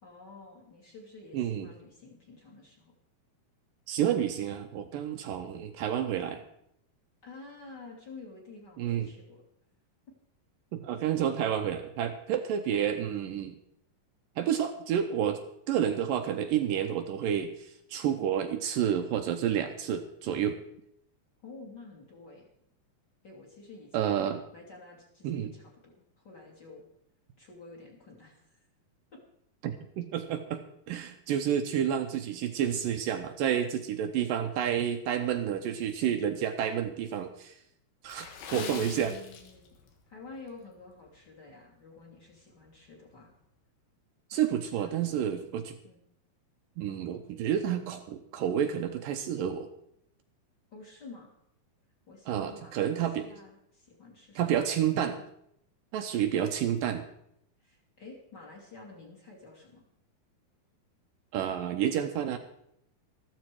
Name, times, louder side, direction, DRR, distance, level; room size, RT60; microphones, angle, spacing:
voice 1, 0.0-2.9 7.2-9.4 10.9-11.1 21.4-22.5 23.2-26.8 27.4-28.6 29.1-29.2 38.5-39.8 40.1-43.3 44.3-45.4 45.8-46.0 50.7-51.3 52.1-54.4 57.6-59.8, left 3 dB, 30° left, 0 dB, 2.8 m, -49 dB
voice 2, 1.3-1.7 3.9-6.4 8.8-9.1 10.7-13.6 14.4-15.4 15.7-20.6 23.9-24.4 25.2-25.5 29.6-30.6 30.9-37.6 38.0-38.3 38.5-39.1 44.3-45.7 46.8-49.7 52.3-53.3 54.4-55.2 55.9-57.0 61.3-62.4, right 9 dB, 75° right, 6 dB, 2.3 m, -30 dB
Water / Splash splatter, 38.0-40.0 40.3-40.5 41.1-41.3 41.7-41.8, left 6 dB, 75° left, 3.4 m, -43 dB
13.5 x 13.5 x 4.8 m, 0.74 s
omnidirectional pair, 4.3 m